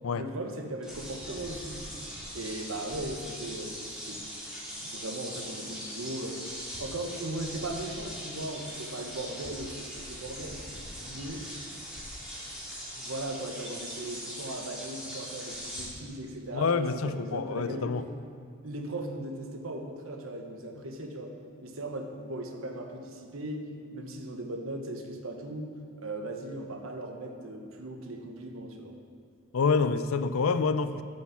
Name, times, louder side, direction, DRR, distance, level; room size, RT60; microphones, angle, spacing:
voice 1, 0.1-1.8 2.3-4.2 4.8-6.4 6.8-10.6 11.0-11.5 12.9-18.0 18.6-21.3 21.6-23.7 23.9-29.0, right 1 dB, 75° right, 4 dB, 1.1 m, -38 dB
sound 1, 0.8-15.9, equal, 5° right, 2.3 m, -41 dB
voice 2, 16.5-18.0 29.5-31.0, left 4 dB, 80° left, 12 dB, 0.5 m, -27 dB
9.0 x 6.4 x 7.1 m, 2.4 s
head